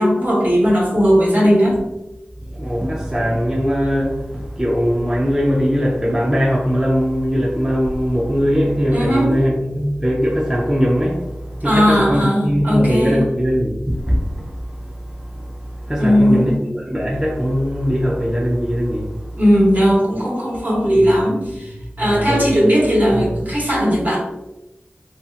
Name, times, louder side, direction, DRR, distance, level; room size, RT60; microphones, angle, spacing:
voice 1, 0.0-1.8 8.9-9.4 11.6-13.2 16.0-16.6 19.4-24.2, equal, 50° right, -7 dB, 1.1 m, -17 dB
voice 2, 2.5-14.6 14.8-14.9 15.4-15.5 15.8-19.1 22.0-22.5 23.1-23.3, equal, 10° right, -3 dB, 0.5 m, -20 dB
2.7 x 2.6 x 2.4 m, 0.94 s
wide cardioid pair, 55°, 4 cm